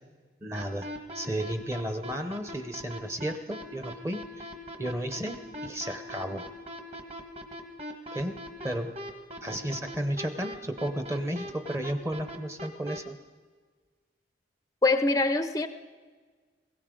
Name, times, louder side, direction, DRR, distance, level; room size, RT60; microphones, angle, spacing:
voice 1, 0.4-0.9 1.1-4.5 4.8-6.5 8.1-8.4 8.6-9.0 9.4-13.2, right 1 dB, 15° right, 8 dB, 0.7 m, -33 dB
sound 1, 0.6-13.0, equal, 35° right, 1.4 m, -40 dB
voice 2, 14.8-15.7, left 3 dB, 20° left, 10 dB, 0.5 m, -24 dB
21.0 x 17.5 x 3.8 m, 1.5 s
head